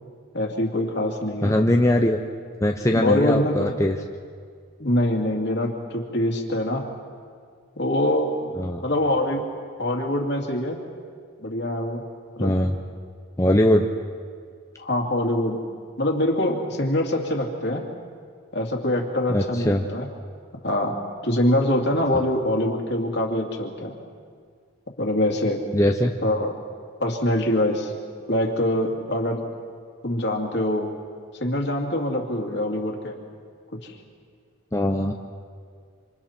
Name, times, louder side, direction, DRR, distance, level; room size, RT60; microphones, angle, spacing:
voice 1, 0.3-1.5 2.9-3.7 4.8-6.8 7.8-8.5 8.8-9.5 9.8-10.8 11.4-12.0 12.4-12.5 14.8-15.6 16.0-17.8 18.5-20.1 20.6-20.9 21.2-23.9 25.0-25.6 26.2-26.5 27.0-27.9 28.3-29.4 30.0-30.9 31.4-33.2, left 1 dB, 55° left, 1 dB, 2.5 m, -24 dB
voice 2, 1.4-2.2 2.6-4.0 8.6-8.8 12.4-12.8 13.4-13.9 19.3-19.8 25.7-26.1 34.7-35.1, left 1 dB, 15° left, 2 dB, 0.7 m, -21 dB
27.0 x 26.5 x 4.4 m, 2.1 s
head